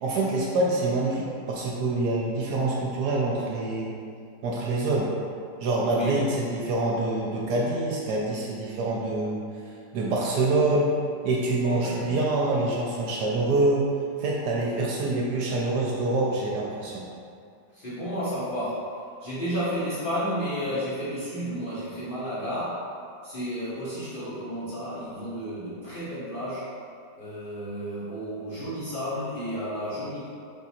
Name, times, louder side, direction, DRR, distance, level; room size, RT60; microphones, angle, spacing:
voice 1, 0.0-3.9 4.4-5.1 5.6-9.4 9.9-10.9 11.2-13.9 14.2-17.0, right 2 dB, 70° right, -3 dB, 1.1 m, -26 dB
voice 2, 5.9-6.2 11.6-12.2 14.7-15.4 17.7-22.9 23.2-26.7 27.2-30.3, equal, 35° left, -12 dB, 0.9 m, -32 dB
3.7 x 2.7 x 4.2 m, 2.4 s
omnidirectional pair, 2.0 m